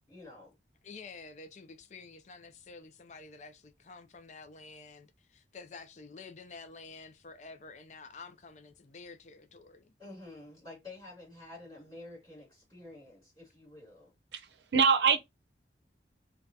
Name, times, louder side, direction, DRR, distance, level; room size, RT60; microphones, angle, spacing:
voice 1, 0.1-0.5 10.0-14.1, left 2 dB, 25° left, 2.3 m, -49 dB
voice 2, 0.8-9.9, left 4 dB, 40° left, 0.4 m, -49 dB
voice 3, 14.3-15.2, right 5 dB, 75° right, 0.6 m, -25 dB
3.7 x 2.3 x 2.6 m
head